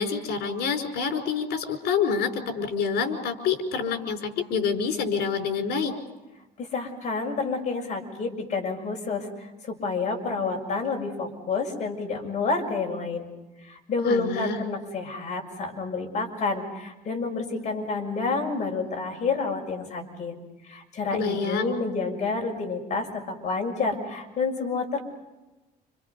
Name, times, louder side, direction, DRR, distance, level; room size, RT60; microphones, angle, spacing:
voice 1, 0.0-5.9 14.0-14.6 21.1-21.8, left 6 dB, 75° left, 6 dB, 5.1 m, -27 dB
voice 2, 6.6-13.3 13.6-20.4 20.6-25.0, left 4 dB, 45° left, 2 dB, 6.8 m, -29 dB
30.0 x 28.0 x 5.5 m, 1.1 s
cardioid pair, 110°, 17 cm